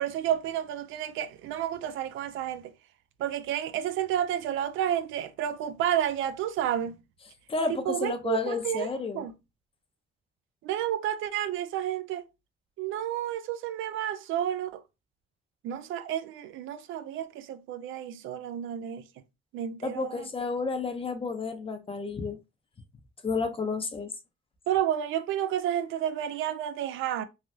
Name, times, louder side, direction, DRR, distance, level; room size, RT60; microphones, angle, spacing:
voice 1, 0.0-2.7 3.2-7.0 7.9-8.9 9.1-9.3 10.6-12.2 12.8-14.8 15.6-19.0 19.5-20.3 24.7-27.2, right 10 dB, 80° right, 0.4 m, -31 dB
voice 2, 7.5-9.3 19.8-22.4 23.2-24.1, left 4 dB, 30° left, 0.6 m, -31 dB
3.3 x 2.3 x 2.6 m
cardioid pair, 90°, 20 cm